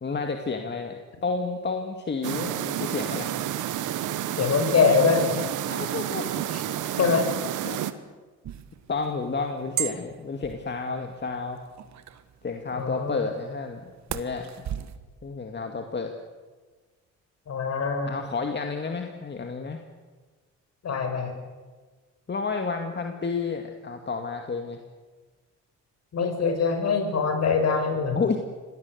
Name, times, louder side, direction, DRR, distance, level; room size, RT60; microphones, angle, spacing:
voice 1, 0.0-3.3 5.7-6.4 7.7-7.8 8.9-11.6 12.4-14.8 15.2-16.1 18.1-19.8 22.3-24.8 28.2-28.4, left 4 dB, 35° left, 4 dB, 2.2 m, -31 dB
sound 1, 2.2-7.9, right 12 dB, 80° right, 1.4 m, -30 dB
voice 2, 4.4-5.3 6.5-6.6 7.0-7.3 12.7-13.2 17.5-18.2 20.8-21.4 26.1-28.2, left 5 dB, 60° left, 6 dB, 6.0 m, -23 dB
sound 2, 8.4-15.0, right 10 dB, 65° right, 1.6 m, -38 dB
25.5 x 19.0 x 8.2 m, 1.3 s
cardioid pair, 90°, 30 cm